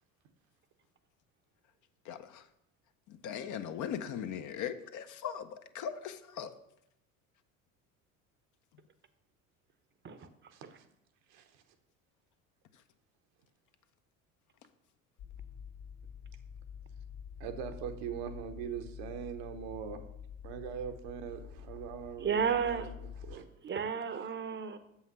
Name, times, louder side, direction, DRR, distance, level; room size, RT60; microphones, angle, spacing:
voice 1, 2.0-2.5 3.1-6.5, left 8 dB, 45° left, 9 dB, 0.7 m, -39 dB
sound 1, 15.2-23.4, left 7 dB, 75° left, 2.0 m, -48 dB
voice 2, 17.4-20.0 20.4-23.4, right 8 dB, 65° right, 6 dB, 1.0 m, -41 dB
voice 3, 22.2-22.9 23.6-24.8, right 7 dB, 25° right, 12 dB, 0.8 m, -32 dB
7.2 x 5.7 x 5.5 m, 0.79 s
hypercardioid pair, 70°, 42 cm